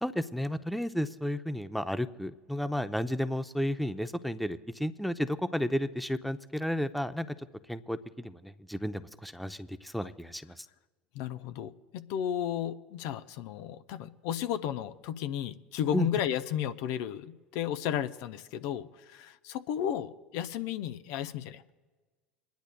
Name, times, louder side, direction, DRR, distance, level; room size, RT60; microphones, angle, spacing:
voice 1, 0.0-7.4 7.7-10.7 15.9-16.1, equal, ahead, 12 dB, 0.6 m, -32 dB
voice 2, 11.1-21.7, left 10 dB, 65° left, 11 dB, 0.6 m, -33 dB
28.0 x 10.5 x 2.2 m, 1.3 s
hypercardioid pair, 75°, 6 cm